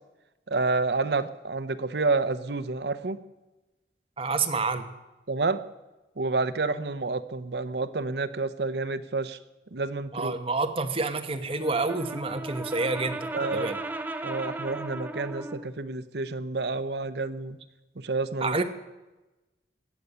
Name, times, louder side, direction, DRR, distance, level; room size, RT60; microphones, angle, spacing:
voice 1, 0.5-3.2 5.3-5.6 6.2-9.4 9.7-10.3 13.3-13.7 14.2-17.6 18.0-18.5, right 3 dB, 70° right, 14 dB, 0.8 m, -29 dB
voice 2, 4.2-4.9 10.1-13.8 18.4-18.6, right 3 dB, 30° right, 7 dB, 1.1 m, -28 dB
Brass instrument, 11.5-15.7, right 2 dB, 10° right, 0.7 m, -36 dB
16.5 x 6.9 x 9.7 m, 1.1 s
head